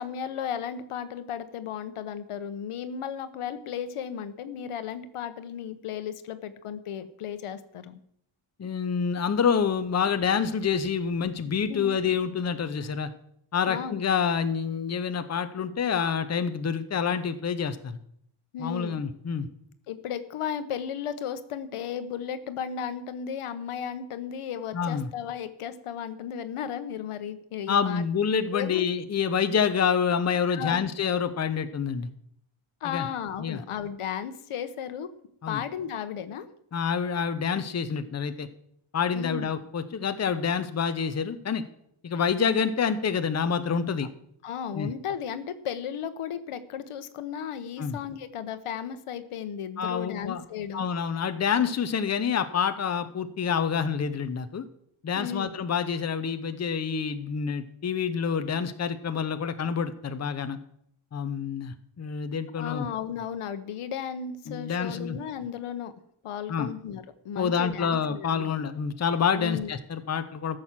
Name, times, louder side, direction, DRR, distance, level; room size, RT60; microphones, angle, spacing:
voice 1, 0.0-8.0 11.7-11.9 13.7-14.0 18.5-19.0 19.9-28.0 28.5-28.9 30.5-30.9 32.8-35.1 35.5-36.5 39.1-39.5 44.4-50.8 55.1-55.6 62.5-65.9 66.2-68.5 69.4-69.7, left 8 dB, 80° left, 12 dB, 1.1 m, -35 dB
voice 2, 8.6-13.1 13.5-18.0 18.6-19.5 24.7-25.1 27.7-32.1 32.8-33.1 33.4-33.6 35.4-35.6 36.7-38.5 38.9-41.6 42.0-44.1 44.7-44.9 47.8-48.0 49.8-50.4 50.7-54.6 55.0-60.6 61.1-62.9 64.5-65.2 66.5-66.7 67.4-70.6, left 6 dB, 30° left, 9 dB, 0.8 m, -27 dB
14.5 x 6.4 x 7.4 m, 0.70 s
wide cardioid pair, 140°, 50 cm